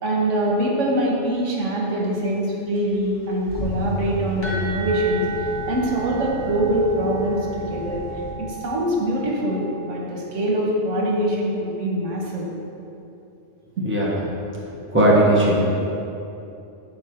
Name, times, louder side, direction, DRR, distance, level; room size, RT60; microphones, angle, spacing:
voice 1, 0.0-8.0 8.4-12.5 13.8-13.9, right 1 dB, 80° right, -2 dB, 1.4 m, -23 dB
sound 1, 2.7-8.3, equal, 30° right, 1.5 m, -33 dB
sound 2, 4.4-10.0, right 3 dB, 75° left, 1.5 m, -35 dB
voice 2, 14.9-15.7, right 1 dB, 10° right, -6 dB, 1.1 m, -17 dB
7.1 x 4.6 x 4.3 m, 2.8 s
omnidirectional pair, 1.3 m